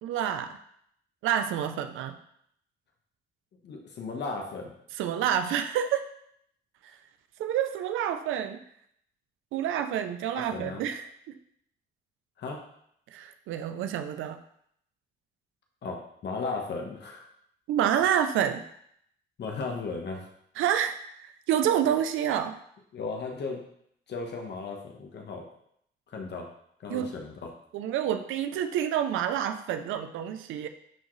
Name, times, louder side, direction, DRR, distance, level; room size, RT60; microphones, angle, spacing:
voice 1, 0.0-0.6 1.2-2.2 4.9-6.1 6.8-6.9 7.4-8.6 9.5-11.4 13.1-14.4 17.7-18.6 20.6-22.6 26.9-27.1 27.7-30.7, right 9 dB, 85° right, 9 dB, 0.6 m, -28 dB
voice 2, 3.6-4.7 10.3-10.8 12.4-12.6 15.8-17.2 19.4-20.3 22.9-23.6 24.1-25.5 26.1-26.5 26.8-27.5, left 4 dB, 60° left, 1 dB, 1.2 m, -35 dB
10.5 x 3.7 x 3.2 m, 0.70 s
cardioid pair, 90°, 20 cm